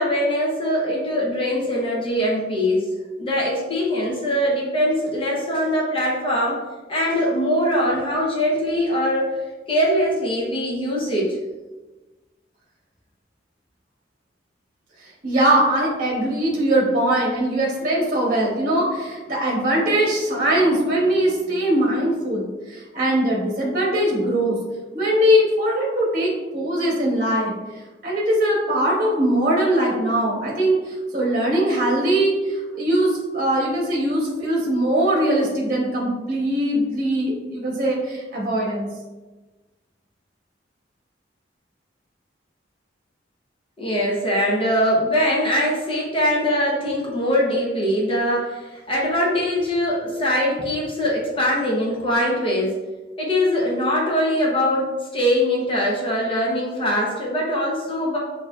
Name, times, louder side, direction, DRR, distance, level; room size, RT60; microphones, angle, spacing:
voice 1, 0.0-2.9 3.2-6.6 6.9-9.3 9.7-11.4 43.8-52.8 53.2-58.2, equal, 30° left, -4 dB, 0.8 m, -22 dB
voice 2, 15.2-24.6 24.9-27.5 28.0-38.9, right 1 dB, 45° right, -3 dB, 0.9 m, -21 dB
6.4 x 2.7 x 2.4 m, 1.2 s
head